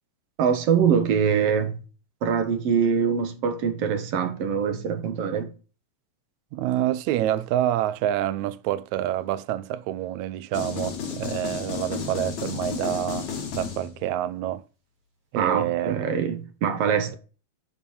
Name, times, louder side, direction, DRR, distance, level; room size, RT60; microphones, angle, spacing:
voice 1, 0.4-1.8 2.2-5.5 15.3-17.2, right 7 dB, 65° right, 1.8 m, -23 dB
voice 2, 6.5-14.6 15.3-16.0, right 12 dB, 80° right, 2.0 m, -27 dB
sound 1, 10.5-14.2, left 6 dB, 75° left, 3.1 m, -32 dB
10.5 x 4.7 x 4.2 m
omnidirectional pair, 3.4 m